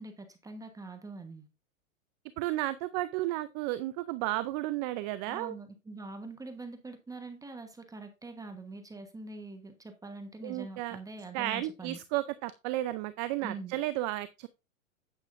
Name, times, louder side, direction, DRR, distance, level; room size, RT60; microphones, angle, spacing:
voice 1, 0.0-1.5 5.3-12.0 13.4-13.8, right 3 dB, 10° right, 1.2 m, -44 dB
voice 2, 2.4-5.5 10.4-11.0 11.3-14.5, right 16 dB, 35° right, 0.5 m, -33 dB
9.1 x 9.0 x 2.6 m
hypercardioid pair, 115°, 41 cm